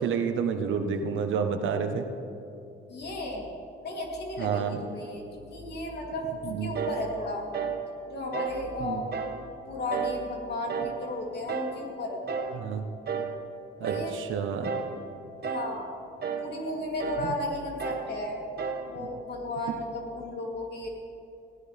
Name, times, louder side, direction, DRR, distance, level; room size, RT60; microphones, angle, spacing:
voice 1, 0.0-2.0 4.4-4.8 6.4-6.8 8.8-9.0 12.5-12.8 13.8-14.7 17.2-17.3 19.0-19.1, right 6 dB, 80° right, 6 dB, 1.4 m, -29 dB
voice 2, 2.9-3.4 3.8-7.4 8.1-9.1 9.7-12.6 13.8-14.2 15.4-15.9 16.4-18.4 18.9-20.9, left 1 dB, 55° left, -1 dB, 3.5 m, -34 dB
sound 1, 6.7-7.0 7.5-7.8 8.3-8.6 9.1-9.4 9.9-10.2 10.7-11.0 11.5-11.8 12.3-12.6 13.1-13.4 13.8-14.1 14.6-15.0 15.4-15.8 16.2-16.5 17.0-17.3 17.8-18.1 18.6-18.9, right 6 dB, 55° right, 1.5 m, -32 dB
20.0 x 16.5 x 3.6 m, 2.7 s
cardioid pair, 90°, 20 cm